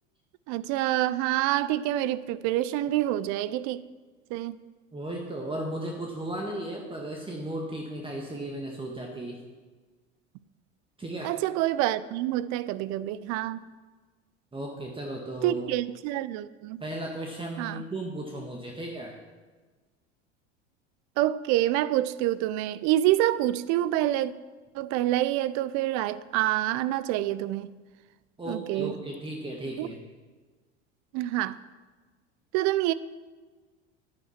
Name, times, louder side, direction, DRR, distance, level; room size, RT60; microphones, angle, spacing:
voice 1, 0.5-3.8 4.3-4.6 11.2-13.6 15.4-16.8 17.6-17.8 21.2-24.3 24.7-27.7 28.5-29.0 29.8-29.9 31.1-31.6 32.5-32.9, right 14 dB, 50° right, 0.6 m, -27 dB
voice 2, 4.9-9.4 11.0-11.3 14.5-15.6 16.8-19.1 28.4-30.0, right 1 dB, 15° right, 1.6 m, -35 dB
10.0 x 9.1 x 5.9 m
hypercardioid pair, 80°, 36 cm